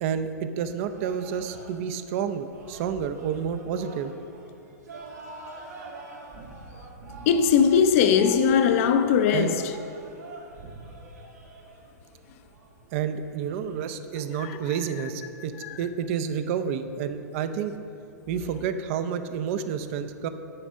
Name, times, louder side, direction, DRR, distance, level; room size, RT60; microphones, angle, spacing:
voice 1, 0.0-4.1 9.3-9.5 12.9-15.5 15.8-17.7 18.3-20.3, right 7 dB, 50° right, 0.6 m, -29 dB
sound 1, 0.9-13.8, right 3 dB, 75° right, 1.8 m, -45 dB
voice 2, 7.3-9.7 14.4-14.6 15.6-15.8, left 7 dB, 50° left, 0.6 m, -20 dB
9.7 x 4.2 x 6.2 m
hypercardioid pair, 115°, 9 cm